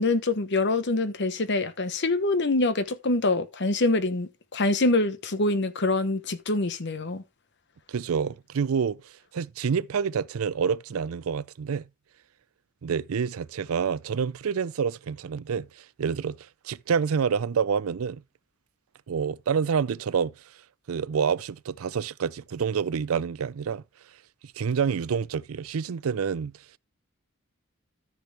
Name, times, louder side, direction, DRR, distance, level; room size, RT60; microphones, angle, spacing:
voice 1, 0.0-7.2, left 2 dB, 55° left, 1.1 m, -25 dB
voice 2, 7.9-11.9 12.8-18.2 19.1-20.3 20.9-23.8 24.6-26.5, right 6 dB, 85° right, 0.4 m, -28 dB
13.5 x 6.0 x 3.3 m
head